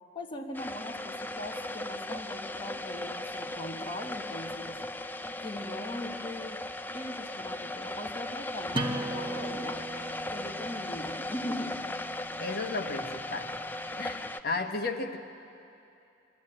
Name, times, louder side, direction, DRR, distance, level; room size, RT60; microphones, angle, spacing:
voice 1, 0.1-4.9 5.4-9.8 10.3-11.9, left 1 dB, 25° left, 2 dB, 1.4 m, -40 dB
sound 1, 0.5-14.4, left 1 dB, 10° left, 0.4 m, -37 dB
sound 2, 8.7-14.1, right 1 dB, 25° right, 1.3 m, -39 dB
voice 2, 12.4-13.5 14.0-15.2, left 3 dB, 55° left, 4 dB, 1.3 m, -34 dB
22.5 x 13.5 x 8.9 m, 2.7 s
head